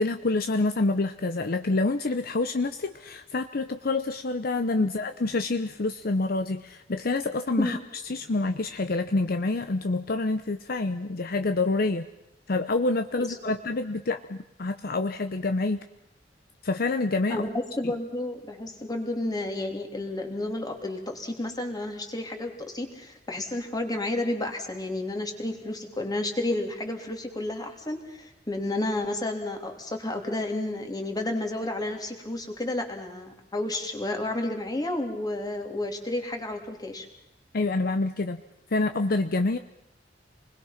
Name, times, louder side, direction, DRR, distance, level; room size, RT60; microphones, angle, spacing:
voice 1, 0.0-7.8 8.1-12.1 12.5-15.8 16.6-17.5 37.5-38.4 38.7-39.6, left 2 dB, 55° left, 8 dB, 0.8 m, -27 dB
voice 2, 17.3-37.1, left 1 dB, 20° left, 4 dB, 2.9 m, -31 dB
28.5 x 20.5 x 5.8 m, 0.85 s
head